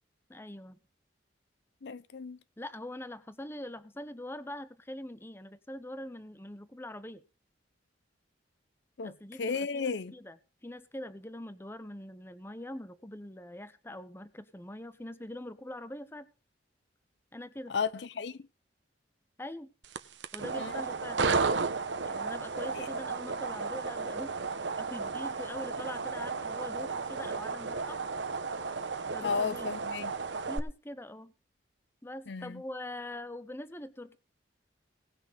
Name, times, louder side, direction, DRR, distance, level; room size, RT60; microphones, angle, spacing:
voice 1, 0.3-0.8 2.6-7.2 9.0-16.3 17.3-17.7 19.4-19.7 20.3-21.3 22.0-24.5 24.8-28.0 29.1-29.7 30.5-31.3 32.0-34.2, left 1 dB, 15° left, 0.8 m, -43 dB
voice 2, 1.8-2.4 9.0-9.1 9.4-10.1 17.7-18.4 20.6-20.7 22.8-22.9 29.2-30.1 32.3-32.6, left 5 dB, 70° left, 0.6 m, -34 dB
sound 1, 19.8-30.6, right 4 dB, 80° right, 1.0 m, -33 dB
18.5 x 6.3 x 5.3 m
head